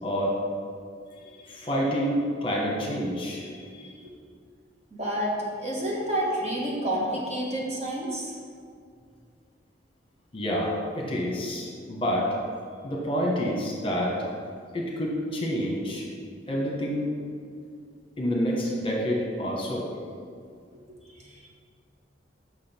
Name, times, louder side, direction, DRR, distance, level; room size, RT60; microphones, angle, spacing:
voice 1, 0.0-0.4 1.4-4.0 10.3-12.3 12.8-14.2 14.7-16.0 16.5-17.1 18.2-19.9, equal, 30° left, -2 dB, 1.2 m, -28 dB
voice 2, 4.9-8.4 21.2-21.5, right 1 dB, 35° right, -4 dB, 1.5 m, -29 dB
7.5 x 6.1 x 4.4 m, 2.2 s
head